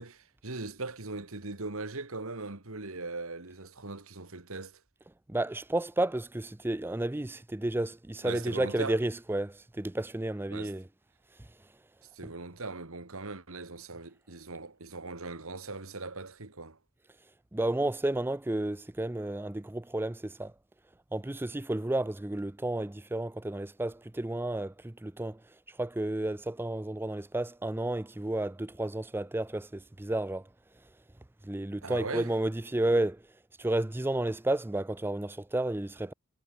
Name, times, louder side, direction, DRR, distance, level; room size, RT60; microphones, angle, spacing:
voice 1, 0.0-4.8 8.2-9.0 10.5-10.7 12.1-16.8 31.8-32.3, right 3 dB, 65° right, 2.0 m, -40 dB
voice 2, 5.3-10.9 11.4-11.5 12.2-12.3 17.5-20.5 21.1-25.4 25.7-30.5 31.4-33.2 33.6-36.1, right 1 dB, 10° right, 0.4 m, -32 dB
head